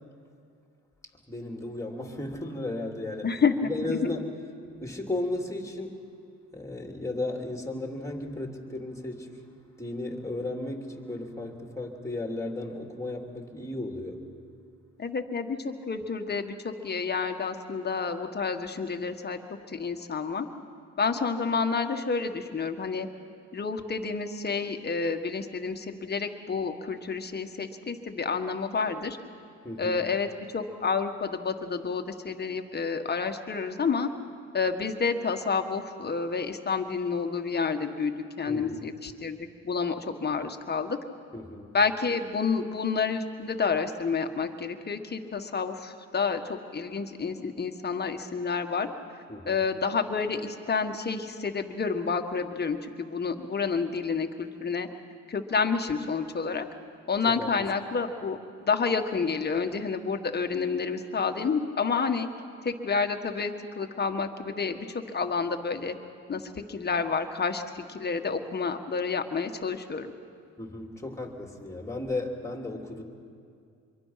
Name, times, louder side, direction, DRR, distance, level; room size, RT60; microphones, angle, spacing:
voice 1, 1.3-3.3 3.6-4.3 4.8-6.0 6.5-9.4 9.8-14.2 29.6-30.0 38.5-38.9 41.3-41.7 49.3-49.6 57.4-57.5 70.6-73.0, left 2 dB, 10° left, 2 dB, 3.0 m, -34 dB
voice 2, 3.2-4.1 15.0-19.4 19.7-20.5 21.0-23.1 23.5-29.2 29.8-34.1 34.5-41.0 41.7-48.9 49.1-54.9 55.3-56.7 57.1-62.3 62.6-65.9 66.3-70.1, left 5 dB, 35° left, 6 dB, 1.6 m, -29 dB
26.0 x 23.0 x 5.8 m, 2.4 s
cardioid pair, 90°, 30 cm